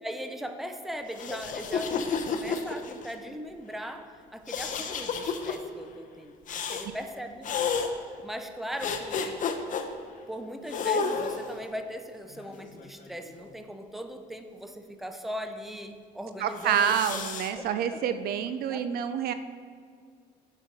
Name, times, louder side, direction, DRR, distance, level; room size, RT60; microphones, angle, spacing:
voice 1, 0.0-6.3 6.7-7.7 8.2-9.4 10.3-17.2 17.5-18.0 18.7-18.8, equal, ahead, 6 dB, 0.6 m, -39 dB
sound 1, 1.1-3.1 4.5-5.6 6.5-6.9 7.4-7.9 8.8-9.8 10.7-11.6 12.4-13.5 16.6-17.5, left 5 dB, 50° left, 0.7 m, -31 dB
voice 2, 16.4-19.3, right 8 dB, 65° right, 11 dB, 0.4 m, -27 dB
6.3 x 6.2 x 5.3 m, 2.1 s
cardioid pair, 110°, 17 cm